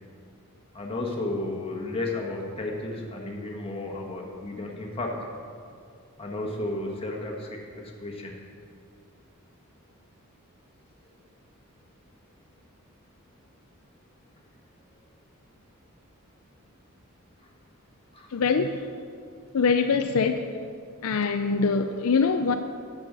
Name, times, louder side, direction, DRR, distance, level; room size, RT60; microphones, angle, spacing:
voice 1, 0.7-5.2 6.2-8.3 18.1-18.3, left 2 dB, 25° left, -1 dB, 1.5 m, -33 dB
voice 2, 18.3-18.9 19.5-20.6 21.0-22.5, left 5 dB, 70° left, 7 dB, 0.5 m, -23 dB
8.9 x 6.9 x 7.3 m, 2.3 s
head